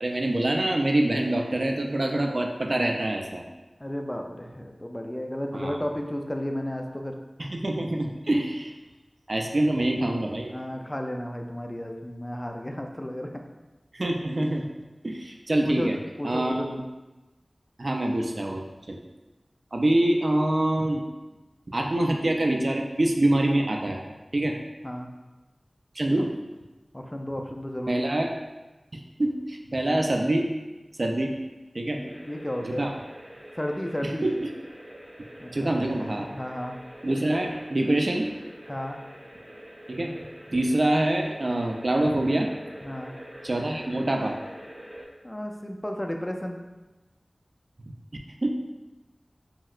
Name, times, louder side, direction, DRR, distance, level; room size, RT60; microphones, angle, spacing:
voice 1, 0.0-3.5 5.5-5.8 7.4-8.7 9.3-10.5 13.9-14.6 15.0-16.0 16.2-16.5 17.8-18.6 18.9-19.0 19.7-21.0 21.7-24.0 24.3-24.6 26.0-26.3 27.9-28.3 28.9-30.5 31.0-31.3 31.7-32.0 32.6-32.9 34.0-34.5 35.5-36.3 37.0-38.3 39.9-40.1 40.5-42.5 43.4-44.3 48.4-48.5, right 1 dB, 60° right, 2 dB, 0.3 m, -25 dB
voice 2, 3.8-7.2 9.6-9.7 10.5-13.3 15.6-16.8 24.8-25.1 26.9-28.3 32.0-32.9 33.6-34.3 35.4-35.8 36.3-36.8 38.7-39.0 42.8-43.1 45.2-46.6, equal, 20° left, 3 dB, 0.3 m, -33 dB
sound 1, 32.1-45.0, equal, 15° right, 0.8 m, -45 dB
3.0 x 2.8 x 2.4 m, 1.1 s
wide cardioid pair, 45°, 0 cm